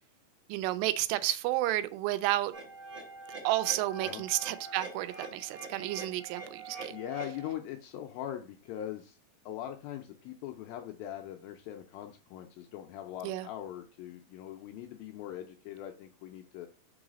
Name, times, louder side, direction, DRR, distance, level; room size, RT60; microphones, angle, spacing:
voice 1, 0.5-2.5 3.4-7.0 13.2-13.5, right 16 dB, 90° right, 2.7 m, -31 dB
sound 1, 2.5-7.5, right 3 dB, 50° right, 1.6 m, -44 dB
voice 2, 6.9-9.2 9.5-16.7, left 11 dB, 85° left, 2.1 m, -41 dB
5.5 x 4.0 x 4.9 m
omnidirectional pair, 4.7 m